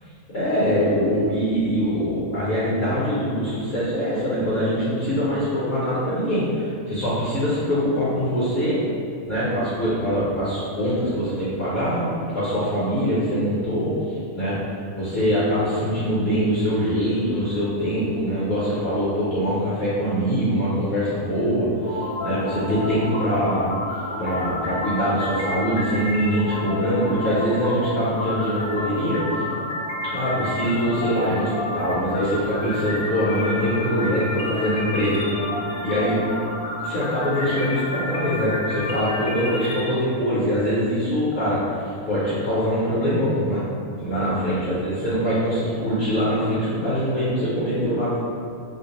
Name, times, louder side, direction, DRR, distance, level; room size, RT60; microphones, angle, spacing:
voice 1, 0.3-8.8 9.3-12.1 12.3-14.6 14.9-23.7 24.2-29.4 30.0-35.2 35.8-36.2 36.8-43.6 43.9-48.2, equal, 55° left, -11 dB, 0.8 m, -23 dB
sound 1, 21.8-39.8, left 1 dB, 80° left, 1.0 m, -30 dB
2.5 x 2.1 x 2.8 m, 2.3 s
omnidirectional pair, 1.4 m